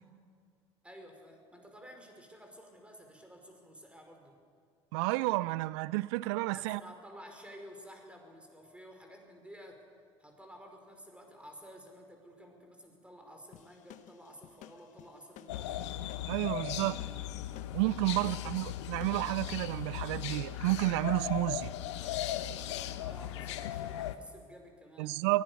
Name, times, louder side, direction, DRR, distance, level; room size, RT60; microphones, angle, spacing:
voice 1, 0.8-4.4 6.5-9.8 10.2-15.8 18.2-18.7 23.0-25.2, equal, 10° right, 5.4 m, -52 dB
voice 2, 4.9-6.8 16.3-17.0 17.7-21.7 25.0-25.4, right 20 dB, 70° right, 0.5 m, -31 dB
sound 1, 13.5-19.3, left 12 dB, 55° left, 1.1 m, -54 dB
sound 2, 15.5-24.2, left 12 dB, 75° left, 0.9 m, -38 dB
23.5 x 16.0 x 7.1 m
hypercardioid pair, 60°, 15 cm